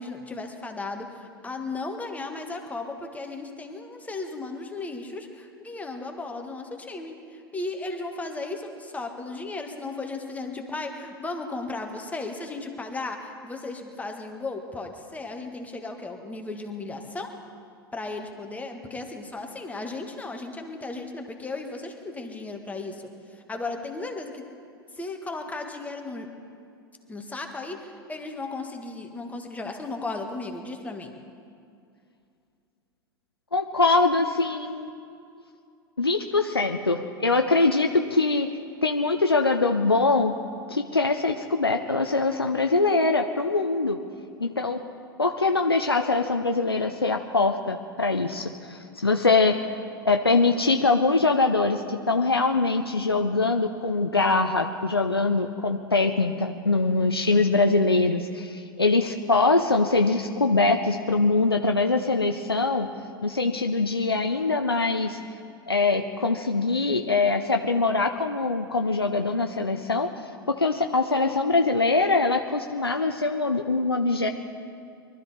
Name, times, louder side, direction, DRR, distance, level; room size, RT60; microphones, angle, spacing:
voice 1, 0.0-17.3 17.9-24.4 24.9-26.3 27.1-31.1, left 3 dB, 10° left, 3 dB, 1.7 m, -35 dB
voice 2, 33.5-34.9 36.0-38.5 38.8-40.4 40.7-44.0 44.4-44.8 45.2-49.6 50.0-62.9 63.2-65.2 65.7-70.1 70.5-74.3, left 3 dB, 85° left, 5 dB, 0.6 m, -23 dB
23.0 x 13.0 x 4.3 m, 2.4 s
figure-of-eight pair, 85°, 12 cm